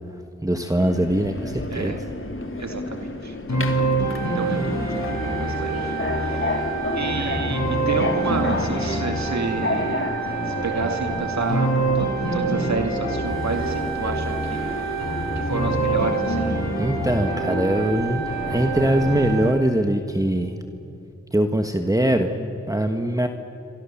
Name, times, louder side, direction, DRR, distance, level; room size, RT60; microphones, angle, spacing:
voice 1, 0.4-2.0 16.8-20.5 21.3-23.3, right 1 dB, 10° right, 5 dB, 1.5 m, -22 dB
Subway metro underground, 0.8-19.5, left 2 dB, 45° left, 2.6 m, -31 dB
voice 2, 1.7-2.1 2.6-6.6 6.9-10.2 10.5-14.8 15.4-16.7, right 3 dB, 65° right, 4 dB, 2.2 m, -30 dB
sound 1, 3.5-19.5, right 3 dB, 65° left, 7.9 m, -26 dB
28.0 x 24.5 x 7.3 m, 2.8 s
cardioid pair, 55°, 30 cm